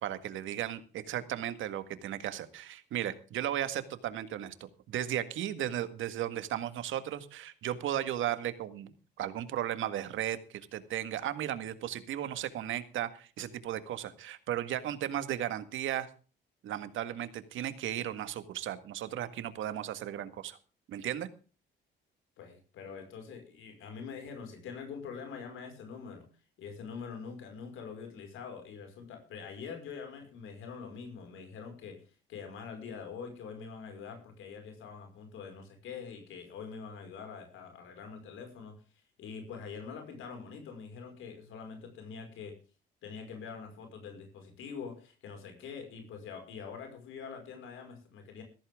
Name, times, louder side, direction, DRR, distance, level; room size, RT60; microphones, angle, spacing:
voice 1, 0.0-4.5 4.9-16.1 16.6-20.6 20.9-21.3, right 11 dB, 80° right, 11 dB, 1.8 m, -35 dB
voice 2, 22.4-26.3 26.6-32.0 32.3-38.8 39.2-42.6 43.0-48.4, left 6 dB, 85° left, 5 dB, 5.5 m, -44 dB
15.5 x 14.0 x 3.7 m, 0.36 s
cardioid pair, 90°, 20 cm